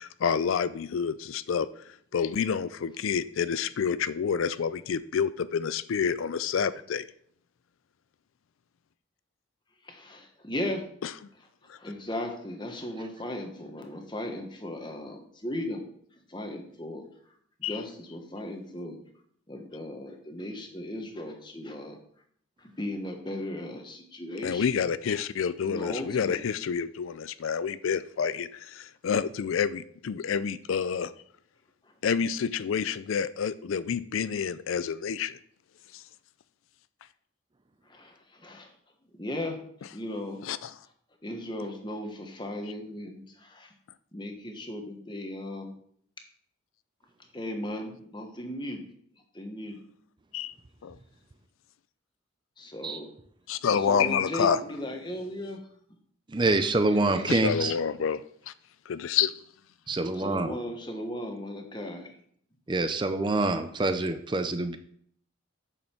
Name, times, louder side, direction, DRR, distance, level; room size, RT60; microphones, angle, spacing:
voice 1, 0.0-7.1 11.0-11.1 11.7-11.8 17.6-17.8 24.4-31.1 32.0-35.4 35.9-36.0 40.4-40.7 50.3-50.5 50.8-51.0 53.5-54.6 57.3-58.5 58.9-59.3, left 7 dB, 80° left, 0.4 m, -28 dB
voice 2, 9.8-10.8 11.8-15.8 16.3-17.1 17.6-19.0 19.5-22.0 22.6-24.6 25.6-26.4 37.9-38.7 39.2-40.4 41.2-43.7 44.1-45.7 47.3-48.8 49.3-49.8 52.6-53.1 53.7-55.6 56.9-57.3 60.1-62.1, left 1 dB, 20° left, 1.2 m, -36 dB
voice 3, 56.3-57.7 59.9-60.6 62.7-64.8, right 2 dB, 25° right, 0.5 m, -26 dB
8.8 x 6.6 x 4.5 m
head